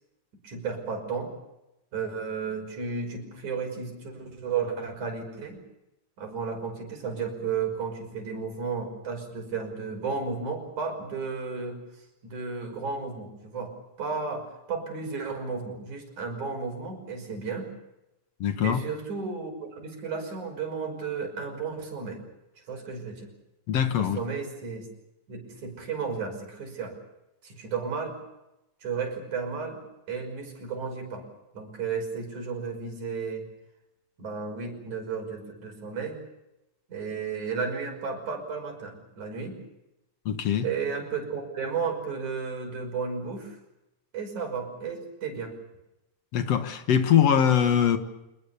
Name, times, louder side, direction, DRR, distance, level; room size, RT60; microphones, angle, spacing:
voice 1, 0.4-1.3 1.9-5.6 6.2-11.8 12.2-17.7 18.6-22.2 22.7-23.3 24.0-24.9 25.3-27.0 27.4-28.2 28.8-29.8 30.1-31.2 31.5-33.5 34.2-36.2 36.9-39.6 40.6-43.6 44.1-45.6, right 5 dB, 75° right, 7.2 m, -33 dB
voice 2, 18.4-18.8 23.7-24.2 40.3-40.7 46.3-48.0, left 8 dB, 60° left, 2.5 m, -22 dB
27.0 x 21.0 x 7.1 m
omnidirectional pair, 3.4 m